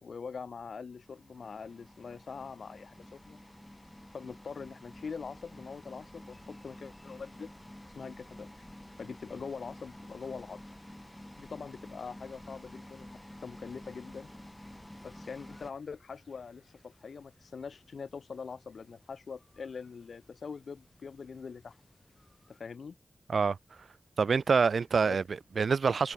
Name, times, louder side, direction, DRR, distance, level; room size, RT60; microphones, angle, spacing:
voice 1, 0.0-3.4 4.1-7.5 8.0-8.5 9.0-10.6 11.4-14.3 15.0-21.8 22.5-23.0 25.0-25.2, left 5 dB, 85° left, 2.1 m, -43 dB
sound 1, 0.9-15.7, left 1 dB, 10° left, 1.6 m, -50 dB
sound 2, 6.3-22.6, left 2 dB, 35° left, 6.5 m, -65 dB
voice 2, 24.2-26.1, right 5 dB, 80° right, 0.3 m, -26 dB
cardioid pair, 60°, 0 cm